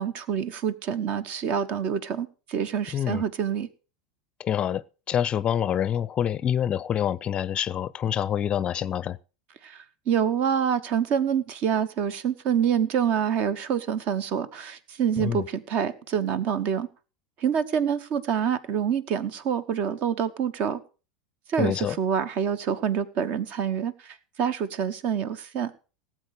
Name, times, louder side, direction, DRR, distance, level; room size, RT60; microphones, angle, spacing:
voice 1, 0.0-3.7 9.6-16.9 17.4-20.8 21.5-25.7, right 8 dB, 50° right, 1.1 m, -26 dB
voice 2, 2.9-3.2 4.4-9.2 15.2-15.4 21.6-22.0, left 9 dB, 35° left, 0.5 m, -26 dB
17.5 x 7.8 x 4.9 m
hypercardioid pair, 85°, 3 cm